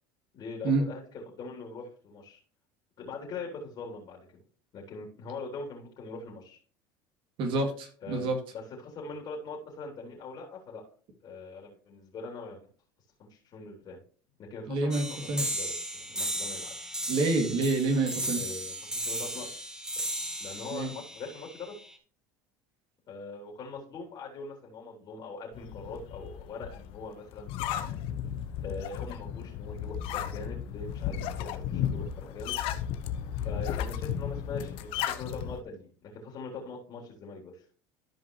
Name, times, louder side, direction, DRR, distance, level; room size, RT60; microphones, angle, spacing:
voice 1, 0.3-2.4 3.0-4.4 4.7-6.6 8.0-10.8 11.2-12.6 13.2-14.0 14.4-16.9 18.4-19.5 20.0-20.1 20.4-21.7 23.1-28.0 28.6-32.6 33.3-37.6, left 3 dB, 45° left, 0 dB, 3.2 m, -42 dB
voice 2, 7.4-8.4 14.7-15.4 17.1-18.4 20.7-20.9, right 3 dB, 60° right, 4 dB, 2.4 m, -27 dB
sound 1, 14.9-21.9, right 1 dB, 5° right, 1.4 m, -35 dB
sound 2, 25.5-35.6, left 9 dB, 65° left, 0.9 m, -34 dB
13.0 x 5.2 x 3.1 m, 0.41 s
supercardioid pair, 95°, 10 cm